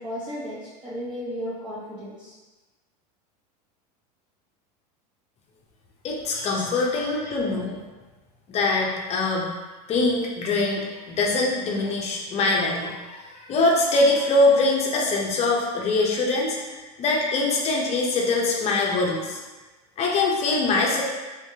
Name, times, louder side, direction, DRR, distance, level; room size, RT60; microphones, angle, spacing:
voice 1, 0.0-2.4 6.3-7.3, equal, 25° right, -8 dB, 0.8 m, -35 dB
voice 2, 6.0-7.8 8.5-9.4 9.9-19.4 20.0-21.0, left 2 dB, 35° left, -2 dB, 0.6 m, -23 dB
3.6 x 3.2 x 2.7 m, 1.2 s
supercardioid pair, 125°, 20 cm